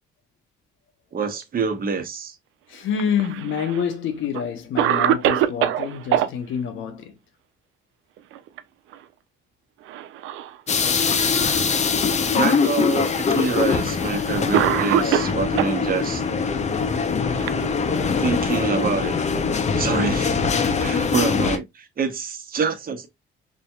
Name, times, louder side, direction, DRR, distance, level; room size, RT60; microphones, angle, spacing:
voice 1, 1.1-2.4 12.3-16.2 18.2-19.2 19.7-20.5 20.8-23.1, right 5 dB, 45° right, 1.0 m, -26 dB
voice 2, 2.7-7.1, left 7 dB, 80° left, 1.0 m, -27 dB
Cough, 2.9-3.8 4.3-4.4 4.8-6.3 8.2-8.6 8.9-9.0 9.9-10.6 11.3-11.4 12.5-12.6 13.7-13.9 14.5-15.8 16.7-18.2, right 11 dB, 90° right, 0.5 m, -23 dB
sound 1, 10.7-21.6, left 5 dB, 35° left, 0.6 m, -22 dB
5.0 x 2.8 x 2.3 m
cardioid pair, 90°, 20 cm